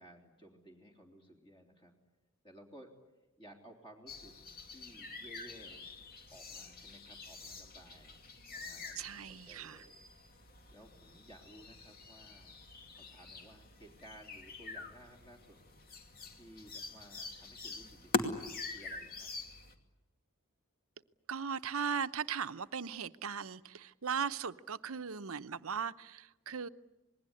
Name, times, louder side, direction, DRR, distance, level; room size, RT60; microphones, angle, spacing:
voice 1, 0.0-1.9 2.4-2.9 3.4-4.4 4.6-6.0 6.3-10.0 10.7-12.6 12.9-15.6 16.3-19.3, right 1 dB, 25° left, 3.5 m, -57 dB
sound 1, 4.1-19.7, left 3 dB, 45° left, 2.5 m, -44 dB
voice 2, 9.0-9.8 21.3-26.7, right 6 dB, 75° right, 0.8 m, -38 dB
27.0 x 20.5 x 9.8 m
head